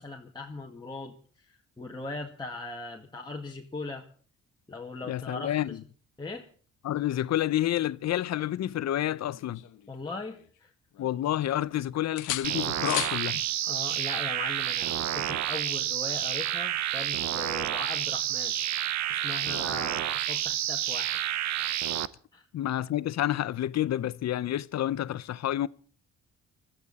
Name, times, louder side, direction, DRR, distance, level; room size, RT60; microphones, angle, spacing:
voice 1, 0.0-4.1 4.7-5.8 6.2-6.5 9.9-10.7 13.6-18.5 19.1-21.2 22.3-22.5, left 3 dB, 15° left, 2.1 m, -39 dB
voice 2, 5.1-5.8 6.8-9.6 11.0-13.4 22.5-25.7, left 12 dB, 60° left, 0.8 m, -29 dB
sound 1, 9.0-10.6 10.9-11.8 12.2-13.2 15.1-15.3, left 14 dB, 85° left, 1.3 m, -37 dB
sound 2, 12.4-22.1, right 11 dB, 65° right, 0.9 m, -29 dB
21.5 x 14.5 x 4.2 m
cardioid pair, 90°, 30 cm